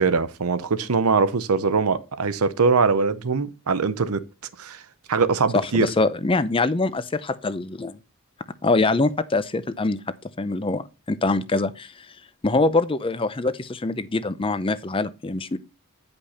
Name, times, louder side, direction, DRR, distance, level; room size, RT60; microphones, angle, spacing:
voice 1, 0.0-4.2 4.6-4.8 5.1-5.9, right 4 dB, 85° right, 0.7 m, -22 dB
voice 2, 5.5-8.0 8.6-10.0 10.4-11.9 12.4-15.6, left 3 dB, 25° left, 0.6 m, -24 dB
10.0 x 5.3 x 4.3 m
head